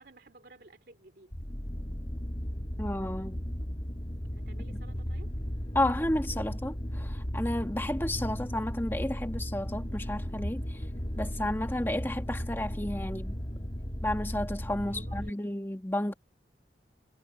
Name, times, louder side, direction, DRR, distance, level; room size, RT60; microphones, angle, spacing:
voice 1, 0.0-1.3 4.4-5.3 14.8-15.4, right 2 dB, 60° right, 2.9 m, -54 dB
sound 1, 1.3-15.3, equal, 30° left, 2.0 m, -35 dB
voice 2, 2.8-3.4 5.7-10.9 11.2-13.4 14.0-16.1, left 1 dB, 15° left, 1.7 m, -32 dB
head